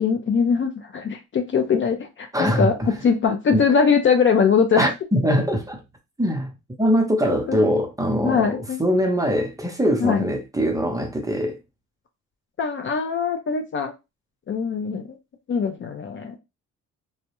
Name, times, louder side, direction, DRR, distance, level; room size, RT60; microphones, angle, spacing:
voice 1, 0.0-4.9 7.5-7.7 8.2-8.8 10.0-10.2 12.6-13.9 14.5-15.1 15.5-16.3, left 6 dB, 40° left, 0.5 m, -21 dB
voice 2, 2.3-2.9 3.5-3.6 4.8-5.8 6.2-6.5 6.8-11.6, equal, 10° right, 0.7 m, -22 dB
2.2 x 2.0 x 2.9 m
cardioid pair, 90°, 30 cm